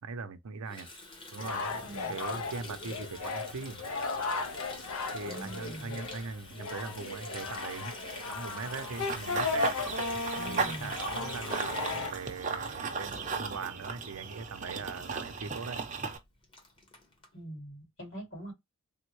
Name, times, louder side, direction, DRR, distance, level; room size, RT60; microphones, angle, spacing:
voice 1, 0.0-0.9 1.3-3.8 5.1-7.9 8.2-9.7 10.5-15.8, right 4 dB, 80° right, 0.6 m, -41 dB
Water tap faucet, 0.7-13.7 14.0-14.2 14.5-14.9 15.1-15.2 15.4-15.5 15.9-16.0 16.2-17.3, left 2 dB, 25° left, 0.8 m, -46 dB
sound 1, 1.4-12.1, left 3 dB, 85° left, 0.6 m, -36 dB
voice 2, 1.8-2.1 5.2-6.0 10.3-10.9 17.3-18.5, right 1 dB, 65° left, 2.3 m, -43 dB
Run / Bird vocalization bird call bird song, 8.7-16.2, right 4 dB, 35° right, 0.5 m, -36 dB
3.5 x 2.1 x 3.0 m
head